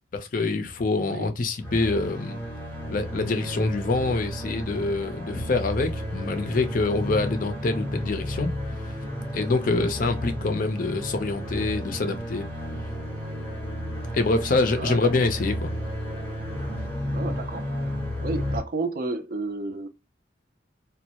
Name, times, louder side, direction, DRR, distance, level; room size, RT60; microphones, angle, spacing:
voice 1, 0.1-2.4 2.9-8.5 8.8-8.9 9.3-12.5 14.1-15.7, left 3 dB, 50° left, 0.5 m, -25 dB
sound 1, 1.6-18.6, equal, 10° left, 1.0 m, -32 dB
voice 2, 14.7-15.3 17.1-17.7 18.2-19.9, right 3 dB, 55° right, 0.4 m, -31 dB
2.2 x 2.0 x 2.8 m
head